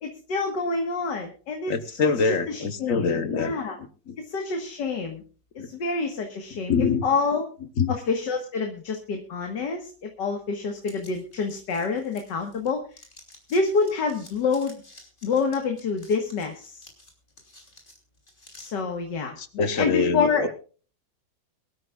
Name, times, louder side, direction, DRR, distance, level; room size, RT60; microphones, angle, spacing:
voice 1, 0.0-2.0 2.2-3.8 4.2-5.2 5.7-6.7 7.0-7.4 7.9-12.8 13.5-14.7 15.2-16.9 18.6-20.5, left 4 dB, 90° left, 4 dB, 2.2 m, -27 dB
voice 2, 1.7-3.5 3.8-4.2 5.6-5.7 6.5-7.1 7.8-8.0 19.4-20.5, left 5 dB, 55° left, 10 dB, 1.4 m, -25 dB
sound 1, 10.8-12.7 12.9-18.7, left 2 dB, 30° left, 3.6 m, -51 dB
24.0 x 12.5 x 2.4 m, 0.38 s
omnidirectional pair, 1.8 m